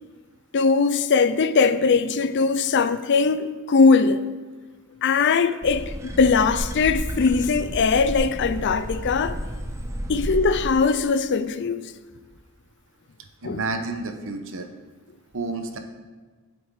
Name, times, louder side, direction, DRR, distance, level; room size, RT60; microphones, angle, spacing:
voice 1, 0.5-4.3 5.0-9.4 10.1-11.9 13.4-13.6, left 4 dB, 50° left, 0.5 m, -20 dB
sound 1, 5.6-10.7, equal, 15° right, 0.7 m, -31 dB
voice 2, 13.4-14.7 15.3-15.8, right 3 dB, 60° right, 0.9 m, -30 dB
8.7 x 7.9 x 4.8 m
head